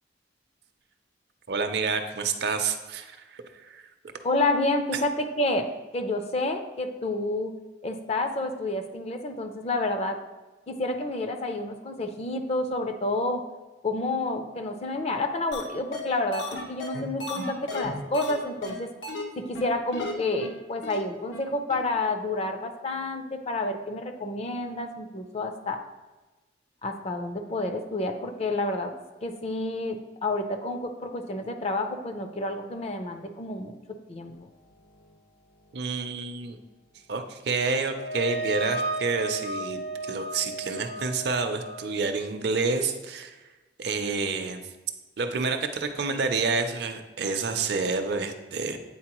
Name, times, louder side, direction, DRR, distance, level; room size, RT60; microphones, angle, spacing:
voice 1, 1.5-3.9 35.7-36.6 37.1-43.4 43.8-44.6 45.2-48.8, right 4 dB, 60° right, 7 dB, 0.5 m, -29 dB
voice 2, 4.2-7.5 7.8-10.2 10.7-13.4 13.8-18.9 19.4-25.8 26.8-28.9 29.2-33.8 34.1-34.5, left 2 dB, 35° left, 6 dB, 0.5 m, -29 dB
sound 1, 15.5-15.6 15.9-16.0 16.3-18.3 18.6-18.7 19.0-19.2 19.5-19.6 19.9-20.1 20.4-20.5 20.8-21.0 21.3-21.4 21.7-21.8, left 2 dB, 85° left, 1.0 m, -34 dB
sound 2, 37.9-42.1, right 2 dB, 65° left, 1.1 m, -33 dB
8.6 x 4.1 x 2.9 m, 1.2 s
head